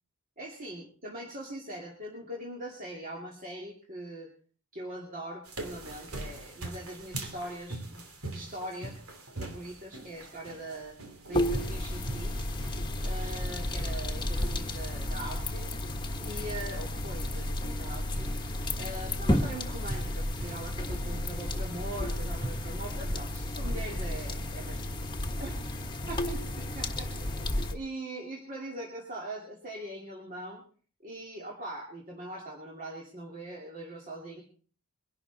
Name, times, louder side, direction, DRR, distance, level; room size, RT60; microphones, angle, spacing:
voice 1, 0.4-4.3 4.7-8.9 9.4-11.0 11.3-12.3 13.0-15.7 16.2-18.3 18.8-25.6 26.1-30.6 31.0-34.4, right 1 dB, 40° right, -2 dB, 2.5 m, -41 dB
sound 1, 5.4-22.5, right 2 dB, 80° right, 2.7 m, -44 dB
sound 2, 11.3-27.8, left 1 dB, 20° left, 1.4 m, -32 dB
22.5 x 11.5 x 4.0 m, 0.42 s
head